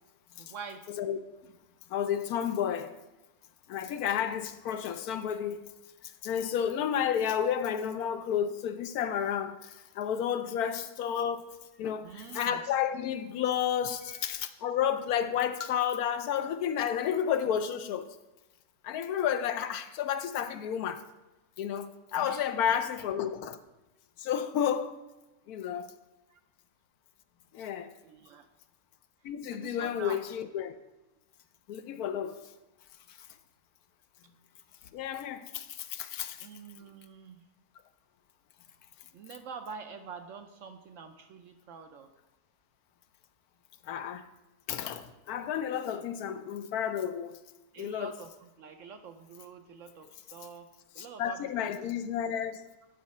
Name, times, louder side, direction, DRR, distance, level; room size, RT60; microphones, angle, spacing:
voice 1, 0.4-0.9 12.0-12.6 14.0-14.3 22.1-22.7 26.3-26.4 28.0-28.5 29.5-30.2 36.4-37.4 39.1-42.1 47.7-50.7 50.9-51.5, right 6 dB, 65° right, 0.8 m, -46 dB
voice 2, 0.9-1.2 1.9-2.9 3.7-5.6 6.0-11.5 11.8-18.1 18.8-21.0 21.6-23.6 24.2-25.0 25.5-25.9 27.5-27.9 29.2-30.8 31.7-32.4 33.1-33.3 34.9-36.5 43.8-44.3 44.7-47.4 47.8-48.1 51.0-52.6, left 9 dB, 75° left, 1.0 m, -31 dB
10.5 x 3.8 x 5.3 m
omnidirectional pair, 1.7 m